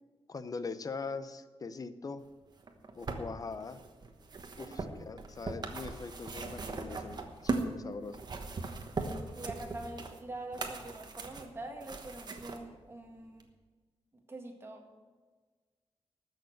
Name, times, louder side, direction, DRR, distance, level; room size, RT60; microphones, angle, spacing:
voice 1, 0.3-2.2 2.9-3.8 4.6-8.2, left 4 dB, 35° left, 13 dB, 0.6 m, -42 dB
sound 1, 2.6-7.7 8.1-12.6 13.4-13.5, right 3 dB, 40° right, 1.2 m, -39 dB
voice 2, 4.7-5.0 9.4-13.5 14.3-14.8, right 2 dB, 25° right, 2 dB, 1.8 m, -44 dB
13.0 x 6.6 x 7.7 m, 1.4 s
wide cardioid pair, 135°, 10 cm